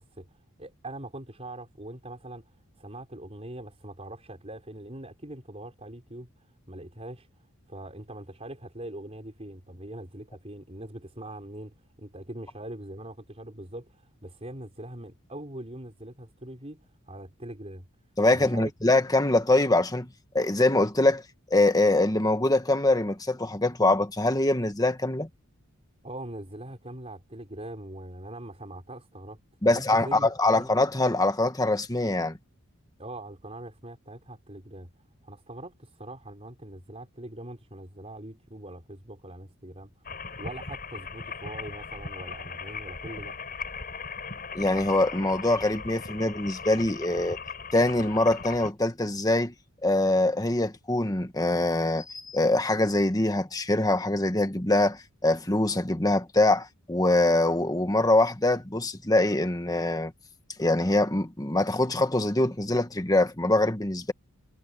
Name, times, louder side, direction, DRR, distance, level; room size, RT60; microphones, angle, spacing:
voice 1, 0.0-7.3 7.7-17.8 18.3-18.7 26.0-30.7 33.0-34.9 35.2-40.1 40.4-43.4, right 1 dB, 30° right, 5.0 m, -42 dB
voice 2, 18.2-20.1 20.3-21.2 21.5-25.3 29.6-32.4 44.5-47.4 47.7-49.5 49.8-60.1 60.6-64.1, left 2 dB, 15° left, 1.5 m, -24 dB
sound 1, 40.0-48.7, left 5 dB, 40° left, 6.8 m, -38 dB
head